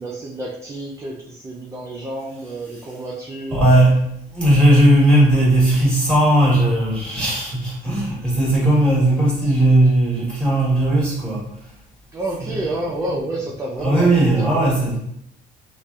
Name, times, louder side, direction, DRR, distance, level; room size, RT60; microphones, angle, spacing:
voice 1, 0.0-3.8 12.1-14.1 14.4-14.7, right 1 dB, 15° right, -2 dB, 0.3 m, -29 dB
voice 2, 3.5-4.1 4.3-11.5 12.4-12.6 13.8-15.0, right 1 dB, 5° left, -6 dB, 1.3 m, -17 dB
2.6 x 2.2 x 2.3 m, 0.74 s
cardioid pair, 110°, 17 cm